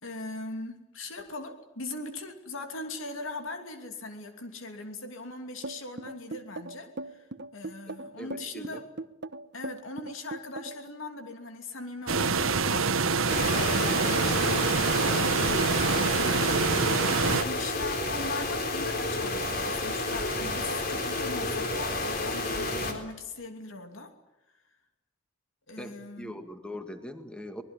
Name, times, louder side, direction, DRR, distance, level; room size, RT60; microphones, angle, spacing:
voice 1, 0.0-7.3 7.5-8.8 9.5-13.2 13.4-15.2 16.2-16.8 17.2-24.1 25.7-26.4, left 2 dB, 75° left, 6 dB, 2.8 m, -40 dB
sound 1, 5.6-10.9, right 2 dB, 55° right, 1.0 m, -39 dB
voice 2, 8.2-8.8 14.5-15.5 16.3-16.6 25.8-27.6, equal, 5° left, 7 dB, 2.0 m, -42 dB
sound 2, 12.1-17.4, right 4 dB, 75° right, 1.3 m, -26 dB
sound 3, 13.3-22.9, left 2 dB, 45° left, 4.1 m, -30 dB
24.5 x 20.5 x 9.9 m, 0.98 s
head